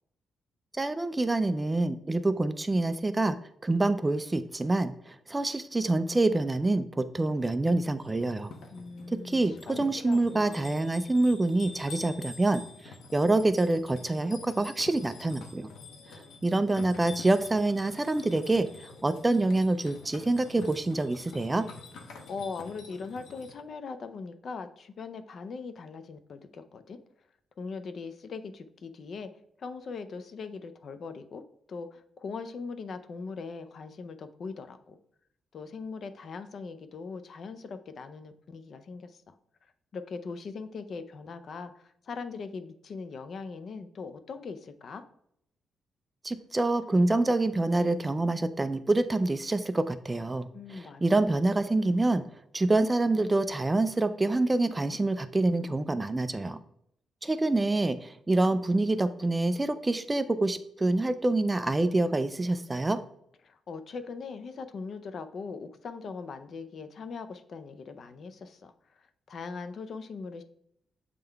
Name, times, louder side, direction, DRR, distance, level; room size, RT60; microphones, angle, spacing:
voice 1, 0.7-3.4 3.6-8.5 9.1-15.7 16.1-21.6 46.2-52.3 52.5-56.6 57.2-63.0, right 2 dB, 15° right, 12 dB, 0.3 m, -26 dB
sound 1, 8.0-23.5, left 3 dB, 80° left, 1.0 m, -47 dB
voice 2, 8.7-10.9 22.1-27.0 27.6-29.3 29.6-31.4 31.7-35.0 35.5-39.3 39.6-45.0 50.5-51.2 63.4-70.4, left 4 dB, 50° left, 10 dB, 0.5 m, -40 dB
7.6 x 3.7 x 3.4 m, 0.72 s
wide cardioid pair, 155°, 0 cm